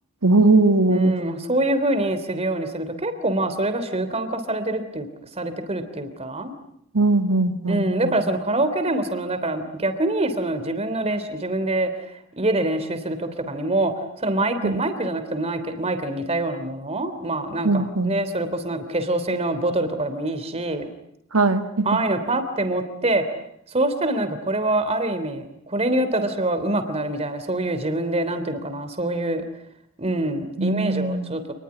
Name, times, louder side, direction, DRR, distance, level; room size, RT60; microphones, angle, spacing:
voice 1, 0.2-1.1 6.9-8.2 14.6-14.8 17.6-18.2 21.3-21.9 30.6-31.4, right 3 dB, 85° right, 7 dB, 1.9 m, -20 dB
voice 2, 0.9-5.1 5.4-6.5 7.7-12.0 12.4-13.9 14.2-20.9 21.8-23.2 23.7-29.4 30.0-31.4, right 1 dB, 30° right, 9 dB, 3.3 m, -25 dB
28.0 x 21.0 x 9.7 m, 0.75 s
head